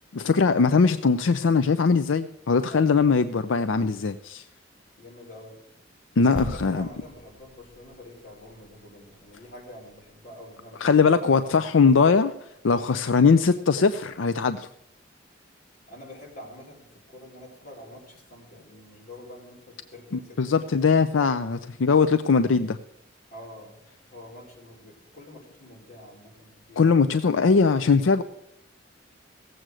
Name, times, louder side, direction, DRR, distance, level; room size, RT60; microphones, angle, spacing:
voice 1, 0.1-4.4 6.2-6.9 10.8-12.3 12.6-14.7 20.4-22.8 26.8-28.2, left 5 dB, 80° left, 10 dB, 0.5 m, -20 dB
voice 2, 2.7-3.0 5.0-5.6 6.1-11.7 15.9-21.3 23.3-23.8 24.0-27.2, left 1 dB, 50° left, -2 dB, 4.5 m, -46 dB
sound 1, 6.4-10.3 10.5-10.7, right 1 dB, 5° right, 6.5 m, -41 dB
17.0 x 7.8 x 6.2 m, 0.78 s
head